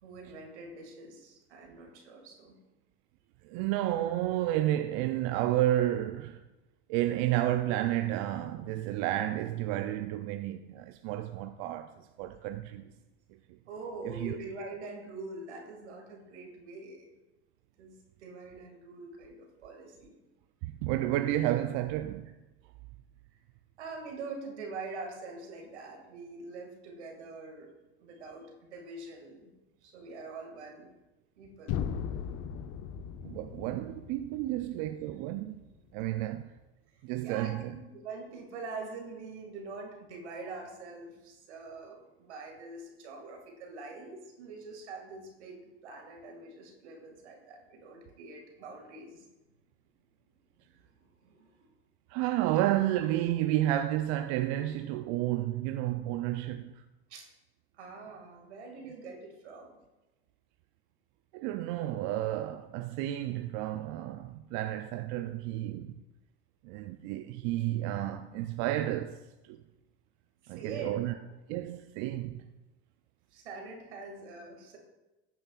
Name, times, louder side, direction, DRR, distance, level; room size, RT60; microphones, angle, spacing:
voice 1, 0.0-2.6 13.7-17.1 17.8-20.2 23.8-27.7 28.0-29.5 29.8-30.9 31.4-31.8 37.2-49.3 50.7-51.7 57.1-57.3 57.7-59.8 70.5-71.0 73.3-74.8, right 3 dB, 80° right, 2.2 m, -44 dB
voice 2, 3.4-6.4 6.9-12.9 14.0-14.4 20.6-22.3 33.2-35.6 35.9-36.5 37.0-37.8 52.1-56.7 61.3-66.0 66.6-69.6 70.5-71.1 71.5-72.5, right 14 dB, 55° right, 0.6 m, -31 dB
sound 1, 31.7-35.6, left 8 dB, 50° left, 0.8 m, -38 dB
15.0 x 8.7 x 2.4 m
hypercardioid pair, 75°, 33 cm